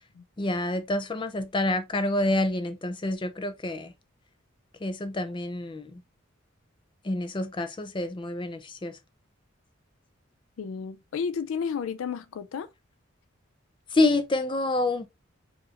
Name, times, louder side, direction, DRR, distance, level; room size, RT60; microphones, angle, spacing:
voice 1, 0.4-3.9 4.8-6.0 7.0-9.0 13.9-15.1, left 2 dB, 25° left, 0.4 m, -27 dB
voice 2, 10.6-12.7, left 6 dB, 85° left, 0.4 m, -32 dB
4.8 x 2.5 x 2.8 m
head